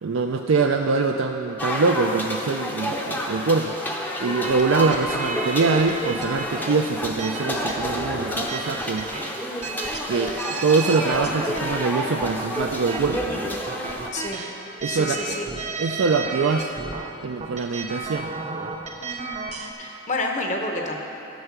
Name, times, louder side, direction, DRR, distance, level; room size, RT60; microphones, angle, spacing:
voice 1, 0.0-9.1 10.1-13.2 14.8-15.4 15.8-16.7 17.2-18.3, right 4 dB, 80° right, 3 dB, 0.4 m, -24 dB
sound 1, 1.6-14.1, equal, 10° left, 0.6 m, -30 dB
sound 2, 4.4-19.7, right 3 dB, 35° right, 0.6 m, -34 dB
Piano, 4.7-8.4 8.7-9.1 9.5-10.1 10.7-10.8 11.0-12.0 12.4-12.5, right 2 dB, 80° left, 2.8 m, -36 dB
voice 2, 14.1-14.4 14.9-15.5 19.0-19.4 19.8-21.0, left 2 dB, 35° left, 1 dB, 1.0 m, -29 dB
11.5 x 6.6 x 6.0 m, 2.9 s
head